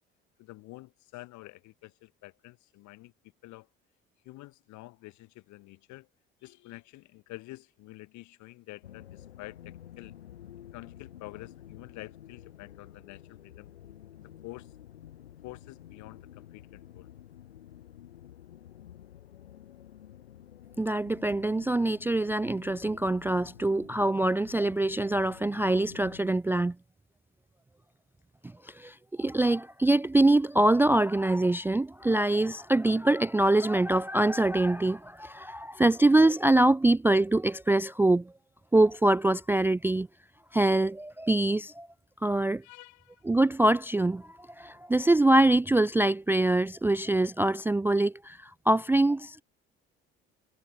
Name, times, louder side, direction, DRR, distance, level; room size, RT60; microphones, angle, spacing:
voice 1, 0.4-3.1 3.4-3.7 4.3-6.1 6.4-10.1 10.7-13.7 14.2-14.7 15.4-17.1 42.6-43.2, left 19 dB, 70° left, 6.9 m, -48 dB
sound 1, 8.8-26.3, left 11 dB, 90° left, 3.3 m, -50 dB
voice 2, 20.8-26.8 28.6-38.3 38.7-40.1 40.5-41.9 42.2-42.6 43.2-49.4, right 2 dB, 5° right, 0.4 m, -24 dB
hypercardioid pair, 60°, 30 cm